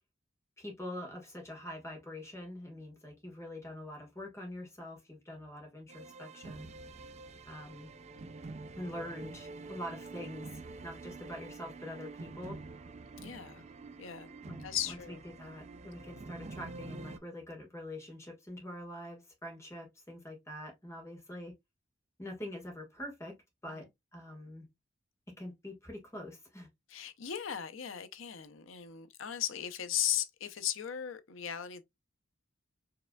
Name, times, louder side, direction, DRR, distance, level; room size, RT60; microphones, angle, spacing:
voice 1, 0.6-6.7 7.4-7.9 8.7-12.6 14.4-21.5 22.2-23.4 23.6-24.7 25.4-26.7, left 1 dB, 15° left, 1.6 m, -45 dB
sound 1, 5.9-17.2, right 3 dB, 35° right, 0.3 m, -47 dB
voice 2, 13.2-13.7 14.0-14.3 14.6-15.2 23.7-23.8 26.9-31.8, left 10 dB, 85° left, 0.6 m, -37 dB
4.8 x 3.3 x 2.2 m
head